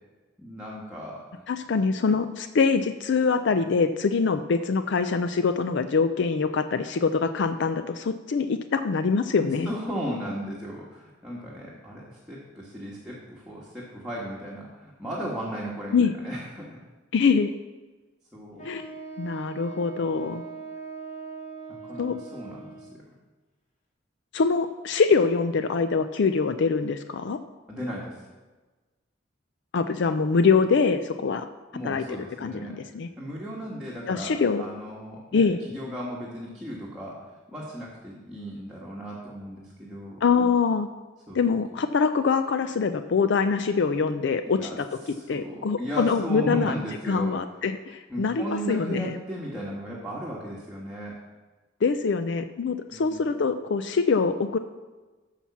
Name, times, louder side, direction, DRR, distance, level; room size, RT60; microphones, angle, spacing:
voice 1, 0.4-1.3 9.6-16.8 18.3-18.7 21.7-23.0 27.7-28.2 31.7-32.7 33.2-40.2 41.3-41.4 44.4-47.4 48.1-51.2 52.9-53.3, equal, 5° right, -6 dB, 1.4 m, -36 dB
voice 2, 1.5-9.7 15.9-16.1 17.1-17.5 18.6-18.9 19.2-20.4 22.0-22.2 24.3-27.4 29.7-31.5 31.8-33.1 34.1-34.6 35.3-35.6 40.2-40.9 41.3-44.8 45.3-46.8 47.1-49.2 51.8-54.6, left 5 dB, 65° left, 10 dB, 0.4 m, -24 dB
Wind instrument woodwind instrument, 18.6-23.0, right 4 dB, 45° left, 2.4 m, -41 dB
9.0 x 5.8 x 7.1 m, 1.2 s
head